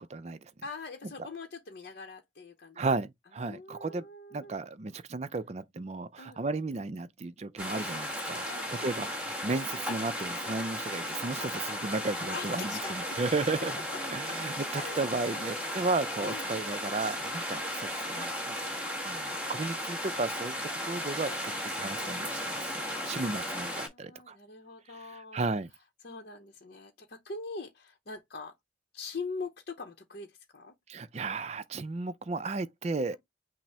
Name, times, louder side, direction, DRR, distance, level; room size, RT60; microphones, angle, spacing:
voice 1, 0.0-0.5 2.8-4.0 4.3-8.5 8.7-13.8 14.1-18.6 19.0-20.5 20.9-22.6 23.0-24.4 24.9-25.7 30.9-33.2, right 3 dB, 35° right, 0.4 m, -34 dB
voice 2, 0.6-2.8 3.4-4.5 6.2-6.4 8.3-9.2 11.4-12.9 14.3-14.4 14.7-15.0 15.3-15.5 16.2-16.5 21.5-21.8 22.8-25.6 26.0-28.5 28.9-30.7, left 4 dB, 55° left, 0.8 m, -43 dB
sound 1, 7.6-23.9, equal, 10° right, 1.3 m, -35 dB
6.0 x 2.0 x 4.3 m
head